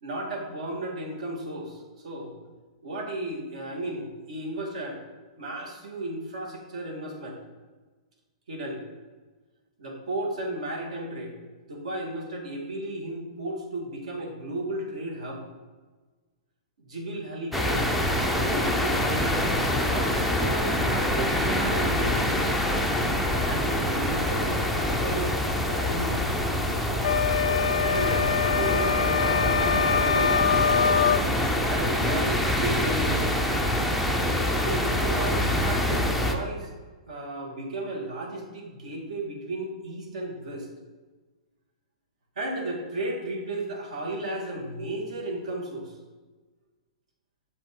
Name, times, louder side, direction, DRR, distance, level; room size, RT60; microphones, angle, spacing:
voice 1, 0.0-2.4 2.8-5.0 5.4-7.4 8.5-8.8 9.8-11.3 11.7-15.5 16.8-17.9 18.4-22.6 23.4-25.4 25.7-26.2 27.8-30.7 31.7-33.4 34.5-36.7 37.1-40.7 42.4-45.9, right 1 dB, 75° right, 0 dB, 1.7 m, -34 dB
sound 1, 17.5-36.3, left 1 dB, ahead, 0.3 m, -25 dB
sound 2, 27.0-31.3, left 7 dB, 85° left, 0.4 m, -24 dB
7.1 x 5.2 x 3.6 m, 1.3 s
hypercardioid pair, 170°, 4 cm